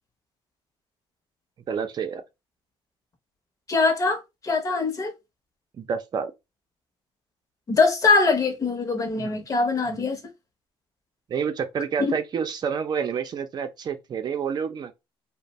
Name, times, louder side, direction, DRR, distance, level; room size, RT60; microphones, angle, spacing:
voice 1, 1.7-2.2 5.8-6.3 9.2-9.4 9.9-10.0 11.3-14.9, right 6 dB, 45° right, 0.6 m, -29 dB
voice 2, 3.7-5.1 7.7-10.2 12.0-12.2, left 4 dB, 35° left, 0.8 m, -22 dB
2.5 x 2.2 x 3.0 m
cardioid pair, 95°, 10 cm